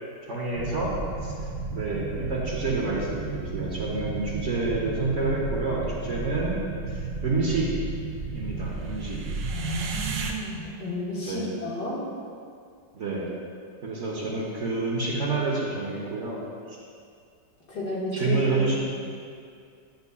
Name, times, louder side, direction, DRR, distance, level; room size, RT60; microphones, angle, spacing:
voice 1, 0.3-1.0 1.2-1.3 1.7-6.6 6.9-7.7 8.3-9.2 11.3-11.5 12.9-13.3 13.8-16.4 16.7-16.8 18.1-18.8, right 3 dB, 50° right, -4 dB, 1.1 m, -28 dB
sound 1, 0.5-10.3, right 4 dB, 65° right, 0.7 m, -33 dB
voice 2, 9.5-12.0 17.7-18.4 18.7-18.8, left 1 dB, 65° left, -7 dB, 2.1 m, -32 dB
10.5 x 6.8 x 2.3 m, 2.3 s
omnidirectional pair, 1.9 m